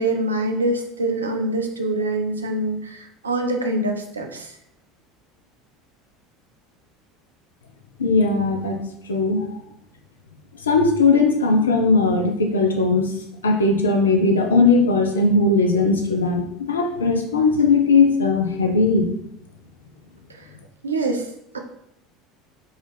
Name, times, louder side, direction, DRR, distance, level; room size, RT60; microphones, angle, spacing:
voice 1, 0.0-4.5 20.8-21.3 21.5-21.6, right 2 dB, 85° right, 4 dB, 0.4 m, -24 dB
voice 2, 8.0-8.8 9.1-9.4 10.7-13.1 13.4-16.4 16.7-19.1, left 3 dB, 80° left, 3 dB, 0.5 m, -18 dB
3.9 x 2.4 x 3.4 m, 0.76 s
figure-of-eight pair, 70°, 0 cm